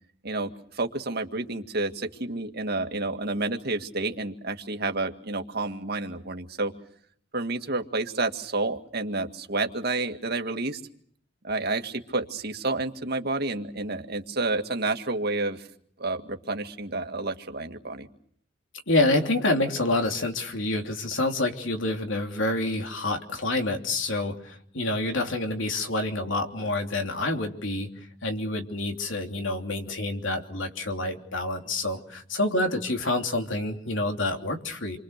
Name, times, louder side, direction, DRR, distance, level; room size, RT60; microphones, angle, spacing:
voice 1, 0.2-6.7 7.3-10.8 11.4-15.7 16.0-18.1, right 2 dB, 55° right, 6 dB, 2.0 m, -30 dB
voice 2, 18.9-27.9 28.2-35.0, left 2 dB, 80° left, 4 dB, 3.1 m, -27 dB
28.5 x 24.0 x 6.6 m, 0.64 s
head